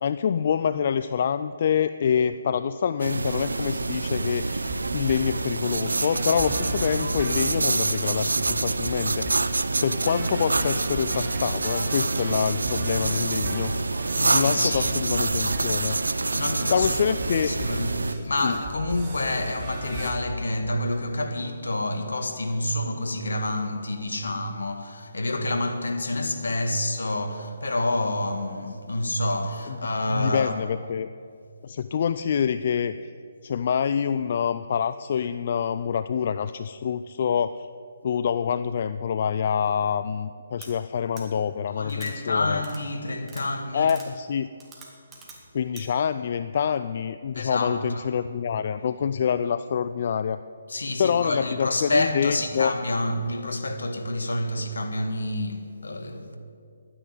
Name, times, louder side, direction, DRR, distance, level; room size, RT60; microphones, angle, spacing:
voice 1, 0.0-9.6 9.8-13.7 14.3-16.0 16.7-17.5 18.2-18.5 29.7-29.8 30.1-31.1 31.6-32.9 33.4-37.7 38.0-42.6 43.7-44.5 45.5-50.4 51.0-52.7, left 7 dB, 50° left, 0.4 m, -26 dB
sound 1, 3.0-18.1, right 3 dB, 80° right, 0.6 m, -27 dB
sound 2, 4.7-20.1, right 1 dB, 40° right, 3.5 m, -36 dB
voice 2, 14.1-14.9 16.1-16.9 17.4-30.6 41.8-43.9 47.3-48.0 50.7-56.4, left 1 dB, 75° left, 1.8 m, -28 dB
sound 3, 40.6-40.7 41.2-41.3 41.9-42.1 42.6-42.8 43.3-43.4 43.9-44.1 44.6-45.4 45.8-45.9, right 5 dB, 15° right, 2.3 m, -44 dB
12.0 x 9.9 x 9.4 m
figure-of-eight pair, 140°, 0 cm